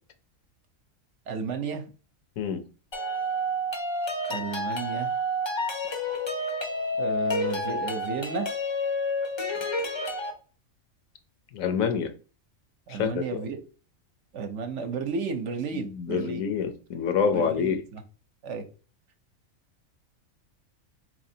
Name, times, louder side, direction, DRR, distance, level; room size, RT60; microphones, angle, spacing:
voice 1, 1.3-1.8 4.3-5.1 7.0-8.5 12.9-13.6 14.3-16.4 17.3-18.0 18.4-18.6, right 5 dB, 65° right, 0.9 m, -33 dB
sound 1, 2.9-10.3, left 1 dB, 40° left, 0.4 m, -29 dB
voice 2, 11.5-12.1 12.9-13.2 15.7-17.8, left 6 dB, 80° left, 1.1 m, -27 dB
4.2 x 3.1 x 2.7 m
omnidirectional pair, 1.4 m